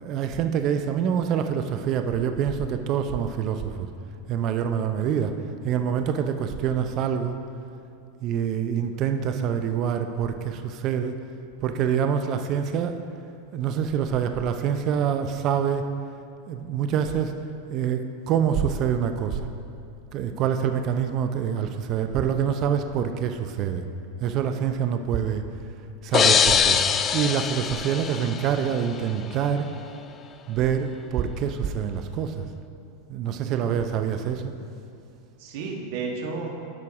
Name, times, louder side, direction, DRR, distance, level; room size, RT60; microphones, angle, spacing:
voice 1, 0.0-3.9 4.3-5.3 5.6-7.4 8.2-11.2 11.6-13.0 13.5-15.9 16.5-17.3 17.7-19.5 20.1-23.8 24.2-25.4 26.0-26.8 27.1-29.7 30.5-32.5 33.1-34.5, right 8 dB, 45° right, 7 dB, 0.6 m, -26 dB
sound 1, 26.1-28.9, left 7 dB, 30° left, 0.4 m, -22 dB
voice 2, 33.2-33.6 35.4-36.5, right 4 dB, 65° right, 1 dB, 1.4 m, -34 dB
12.0 x 4.7 x 4.8 m, 2.5 s
hypercardioid pair, 100°, 0 cm